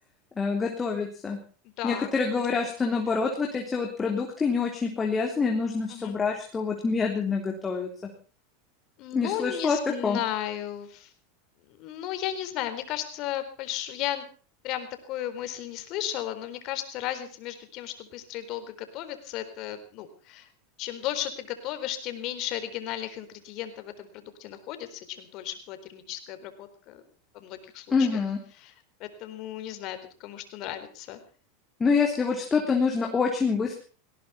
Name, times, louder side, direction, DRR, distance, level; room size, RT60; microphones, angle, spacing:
voice 1, 0.4-1.4 1.8-7.9 9.1-9.8 10.0-10.2 27.9-28.4 31.8-33.8, left 5 dB, 20° left, 1 dB, 3.5 m, -26 dB
voice 2, 1.8-2.5 2.9-3.0 5.9-6.2 9.0-11.1 11.7-14.3 14.6-20.5 20.8-27.0 27.3-28.2 28.6-28.7 29.0-31.2, left 12 dB, 50° left, 10 dB, 4.0 m, -35 dB
19.0 x 17.5 x 4.2 m, 0.38 s
hypercardioid pair, 110°, 0 cm